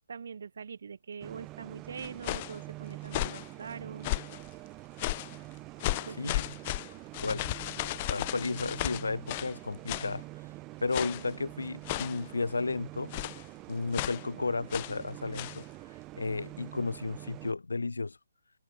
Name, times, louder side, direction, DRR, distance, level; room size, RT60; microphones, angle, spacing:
voice 1, 0.1-4.1 5.8-6.3, right 6 dB, 55° right, 1.3 m, -43 dB
sound 1, 1.2-17.5, right 20 dB, 20° right, 1.1 m, -46 dB
sound 2, 2.0-2.6 3.0-3.5 4.0-4.4 5.0-5.4 5.8-9.6 9.9-10.1 10.9-11.3 11.8-12.3 13.1-13.4 13.9-14.2 14.7-15.0 15.3-15.6, left 19 dB, 30° left, 0.4 m, -34 dB
voice 2, 6.2-6.5 7.2-7.5 8.1-10.2 10.8-13.1 13.7-15.6 16.1-18.2, left 3 dB, 70° left, 2.2 m, -33 dB
figure-of-eight pair, 140°, 0 cm